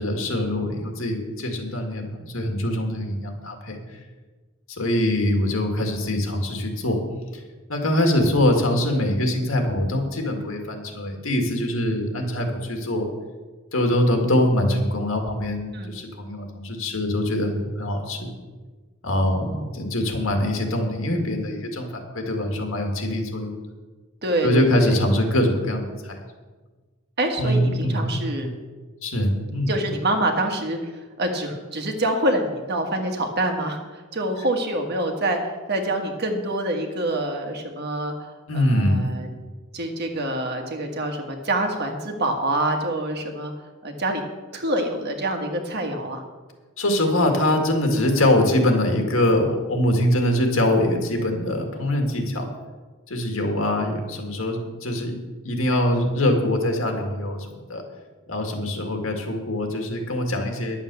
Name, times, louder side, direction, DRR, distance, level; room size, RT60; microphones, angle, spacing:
voice 1, 0.0-3.8 4.7-7.0 7.3-7.4 7.7-13.1 13.7-18.3 19.0-23.5 24.4-26.2 27.4-28.1 28.4-28.5 29.0-29.7 38.5-39.0 46.8-52.5 53.1-55.1 55.4-57.8 58.3-60.8, left 1 dB, 75° left, 3 dB, 2.0 m, -23 dB
voice 2, 19.1-19.7 24.2-25.0 27.2-28.5 29.7-38.3 38.5-39.3 39.7-43.5 43.8-44.2 44.5-46.2, right 1 dB, 50° right, 4 dB, 1.6 m, -26 dB
10.5 x 7.5 x 6.9 m, 1.3 s
head